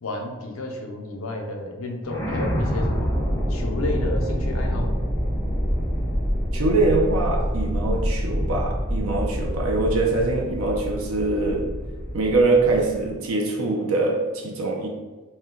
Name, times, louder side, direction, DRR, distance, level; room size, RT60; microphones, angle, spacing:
voice 1, 0.0-3.1 3.5-5.0, left 1 dB, 70° left, 2 dB, 0.6 m, -31 dB
sound 1, 2.0-13.1, equal, 15° left, 0.7 m, -26 dB
voice 2, 6.5-11.7 12.1-14.9, right 2 dB, 85° right, -1 dB, 0.6 m, -23 dB
4.2 x 2.2 x 3.7 m, 1.3 s
head